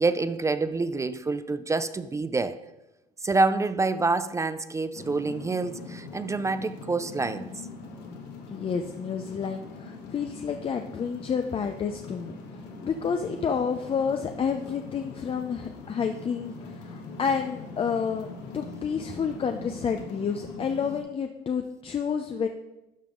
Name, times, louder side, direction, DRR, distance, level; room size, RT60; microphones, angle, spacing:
voice 1, 0.0-2.6 3.2-7.6, right 3 dB, 15° right, 0.3 m, -27 dB
sound 1, 4.9-21.0, left 4 dB, 80° left, 1.6 m, -42 dB
voice 2, 8.5-22.5, left 6 dB, 30° left, 0.5 m, -30 dB
12.0 x 5.3 x 3.8 m
supercardioid pair, 100°, 18 cm